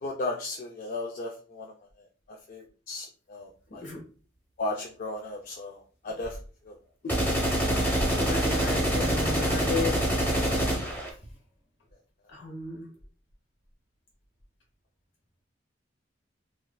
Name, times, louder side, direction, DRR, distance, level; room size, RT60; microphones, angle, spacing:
voice 1, 0.0-1.7 2.5-3.8 4.6-6.4 6.7-6.8, left 2 dB, 45° left, 1 dB, 0.4 m, -35 dB
sound 1, 7.1-11.1, right 1 dB, 10° left, 0.9 m, -26 dB
voice 2, 8.1-10.0 12.3-12.9, left 3 dB, 70° left, -1 dB, 1.2 m, -33 dB
3.3 x 2.4 x 2.2 m, 0.39 s
head